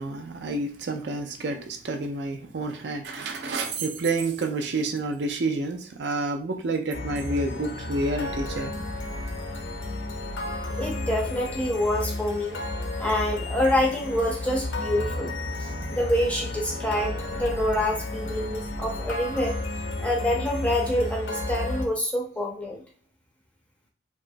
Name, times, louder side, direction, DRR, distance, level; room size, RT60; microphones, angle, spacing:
voice 1, 0.0-8.7, right 2 dB, 70° right, 0.4 m, -29 dB
sound 1, 6.9-21.8, left 2 dB, 85° left, 0.6 m, -32 dB
voice 2, 10.8-12.6 13.0-15.3 15.9-19.5 20.0-22.8, left 1 dB, 5° left, 0.5 m, -26 dB
2.9 x 2.3 x 2.5 m
head